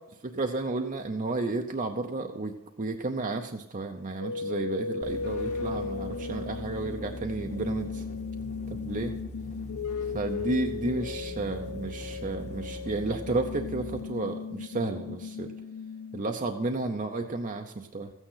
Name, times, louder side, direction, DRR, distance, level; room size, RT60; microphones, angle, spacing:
voice 1, 0.2-8.0 8.7-9.1 10.1-15.5 16.1-18.1, right 2 dB, 35° right, 4 dB, 0.7 m, -32 dB
sound 1, 4.2-16.2, left 5 dB, 75° left, 0.5 m, -36 dB
sound 2, 5.0-14.1, equal, 30° left, 1.2 m, -42 dB
14.5 x 9.0 x 5.6 m, 0.99 s
head